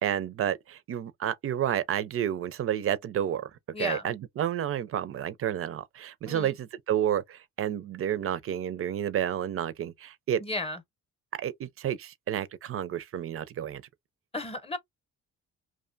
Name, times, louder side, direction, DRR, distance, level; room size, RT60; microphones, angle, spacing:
voice 1, 0.0-3.5 3.8-10.4 11.4-13.8, right 10 dB, 50° right, 0.4 m, -30 dB
voice 2, 3.7-4.1 6.3-6.6 10.4-10.8 14.3-14.8, left 2 dB, 20° left, 0.7 m, -34 dB
2.6 x 2.2 x 2.5 m
cardioid pair, 90°, 30 cm